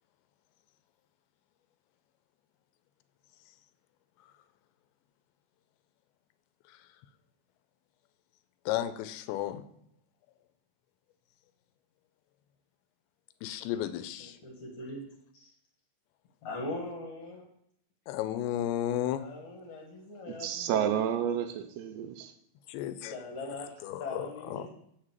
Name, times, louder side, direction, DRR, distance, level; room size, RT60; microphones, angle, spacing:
voice 1, 8.7-9.6 13.4-14.4 18.1-19.3 22.7-23.1 23.8-24.7, left 12 dB, 85° left, 2.7 m, -33 dB
voice 2, 14.2-15.0 15.3-15.5 16.4-17.5 19.1-21.0 23.1-24.7, left 2 dB, 60° left, 2.0 m, -41 dB
voice 3, 20.3-22.3, right 9 dB, 80° right, 2.8 m, -31 dB
8.0 x 6.3 x 7.4 m
omnidirectional pair, 5.2 m